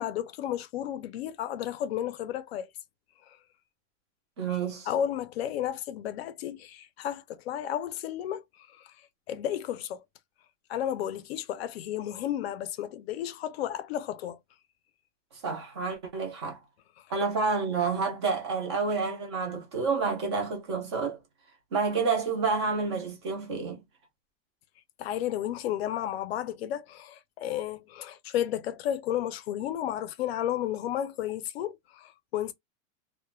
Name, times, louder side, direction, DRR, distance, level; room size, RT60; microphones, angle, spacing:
voice 1, 0.0-2.7 3.3-3.4 4.9-8.9 9.3-10.0 10.7-14.4 17.0-17.1 25.0-32.5, left 11 dB, 55° left, 0.5 m, -33 dB
voice 2, 4.4-4.9 15.4-16.6 17.1-21.2 21.7-23.8, right 4 dB, 25° right, 0.3 m, -29 dB
2.3 x 2.1 x 2.9 m
supercardioid pair, 175°, 38 cm